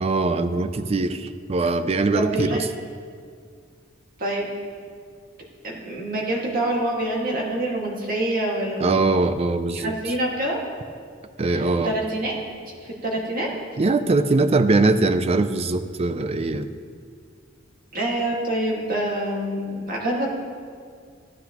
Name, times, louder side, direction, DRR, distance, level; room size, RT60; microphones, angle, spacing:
voice 1, 0.0-2.7 8.8-9.9 11.4-11.9 13.8-16.7, right 3 dB, 30° right, 11 dB, 0.4 m, -21 dB
voice 2, 2.1-2.6 4.2-4.6 5.6-9.0 9.7-10.6 11.5-12.3 12.8-13.5 17.9-20.3, right 1 dB, 50° right, -2 dB, 1.9 m, -26 dB
15.5 x 9.7 x 3.0 m, 2.1 s
head